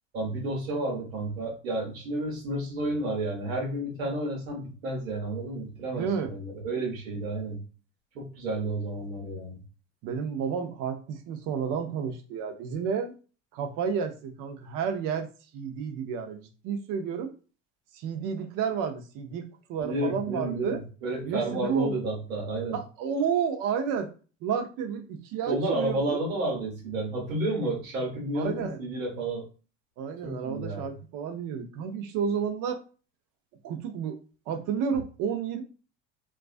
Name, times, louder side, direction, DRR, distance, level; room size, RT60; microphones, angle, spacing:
voice 1, 0.1-7.6 8.1-9.6 19.8-22.8 25.5-29.5 30.2-30.9, right 1 dB, 85° right, -1 dB, 1.1 m, -31 dB
voice 2, 5.9-6.3 10.0-13.1 13.5-17.3 17.9-19.4 19.7-20.8 21.2-21.9 22.7-24.1 24.4-26.2 28.4-28.8 30.0-32.8 33.6-34.2 34.5-35.6, right 7 dB, 55° right, 5 dB, 0.7 m, -31 dB
2.4 x 2.2 x 2.4 m, 0.36 s
hypercardioid pair, 85°, 39 cm